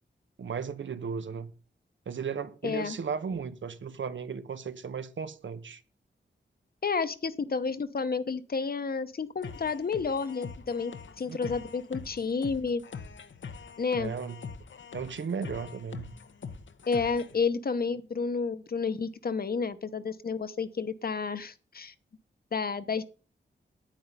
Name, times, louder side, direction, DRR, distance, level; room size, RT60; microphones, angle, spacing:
voice 1, 0.4-1.5 2.1-5.8 11.3-11.7 14.0-14.4 14.9-16.1, right 6 dB, 85° right, 1.1 m, -35 dB
voice 2, 2.6-3.0 6.8-12.8 13.8-14.1 16.9-21.9 22.5-23.0, left 5 dB, 50° left, 0.9 m, -31 dB
sound 1, 9.4-17.4, left 5 dB, 85° left, 1.1 m, -44 dB
9.4 x 9.3 x 5.4 m
wide cardioid pair, 130°, 19 cm